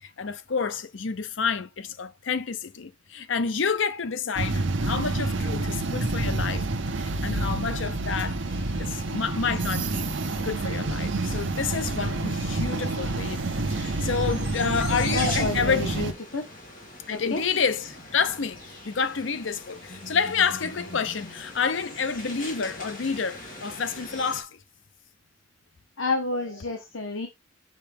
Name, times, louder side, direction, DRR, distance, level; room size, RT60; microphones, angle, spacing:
voice 1, 0.0-6.7 7.0-8.4 8.8-10.1 10.4-16.0 17.1-24.6, left 5 dB, 70° left, 0.7 m, -29 dB
sound 1, 4.3-16.1, right 2 dB, 65° right, 0.8 m, -28 dB
sound 2, 8.5-24.4, left 2 dB, 45° left, 2.4 m, -41 dB
voice 2, 15.1-16.5 17.1-17.4 26.0-27.3, left 2 dB, 85° left, 1.1 m, -30 dB
6.4 x 5.6 x 3.5 m
head